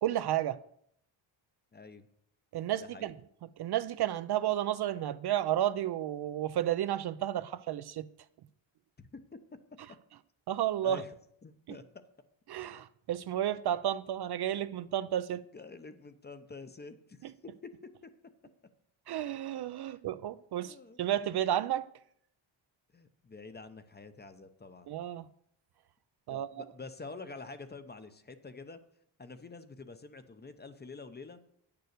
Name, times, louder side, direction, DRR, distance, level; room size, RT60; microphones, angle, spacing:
voice 1, 0.0-0.6 2.5-3.1 3.6-8.1 10.5-11.0 12.5-15.4 17.2-17.3 19.1-21.9 24.9-25.3 26.3-26.5, right 11 dB, 55° right, 0.5 m, -32 dB
voice 2, 1.7-2.1 2.8-3.1 9.0-9.2 10.8-11.1 11.4-11.8 15.5-17.7 18.0-18.1 19.9-20.0 20.6-21.0 22.9-24.9 26.3-28.8 29.2-31.5, left 4 dB, 20° left, 0.7 m, -47 dB
9.1 x 6.9 x 6.5 m
cardioid pair, 130°, 49 cm